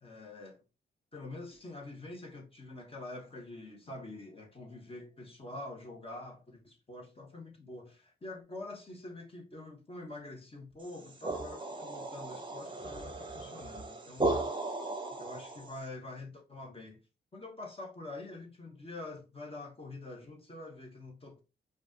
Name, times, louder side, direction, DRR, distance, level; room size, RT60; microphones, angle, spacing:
voice 1, 0.0-0.6 1.1-14.4 15.2-17.0 17.3-21.4, left 2 dB, 30° left, 1.3 m, -46 dB
sound 1, 10.9-15.8, right 2 dB, 25° right, 0.9 m, -36 dB
5.2 x 2.5 x 2.9 m
cardioid pair, 75°, 20 cm